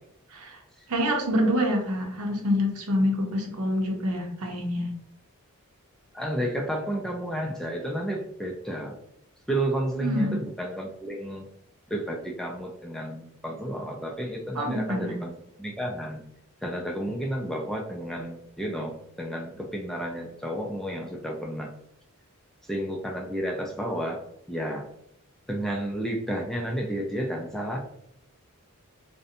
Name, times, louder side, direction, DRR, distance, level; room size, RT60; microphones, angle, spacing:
voice 1, 0.9-4.9 10.0-10.4 14.5-15.2, equal, 85° right, 2 dB, 0.7 m, -26 dB
voice 2, 6.1-9.0 9.5-11.5 11.9-15.3 15.6-16.3 16.6-21.7 22.7-24.2 24.5-24.9 25.5-27.8, right 1 dB, ahead, 0 dB, 0.3 m, -31 dB
2.5 x 2.1 x 2.7 m, 0.74 s
head